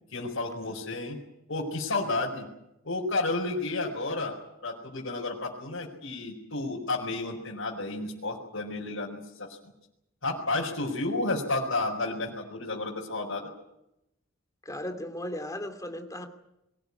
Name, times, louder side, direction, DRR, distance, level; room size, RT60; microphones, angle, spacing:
voice 1, 0.1-1.2 1.5-2.4 2.8-4.3 4.6-9.6 10.2-13.5, left 2 dB, 65° left, -4 dB, 4.7 m, -31 dB
voice 2, 14.6-16.3, left 1 dB, 15° left, 7 dB, 2.8 m, -36 dB
22.5 x 18.5 x 9.9 m, 0.86 s
head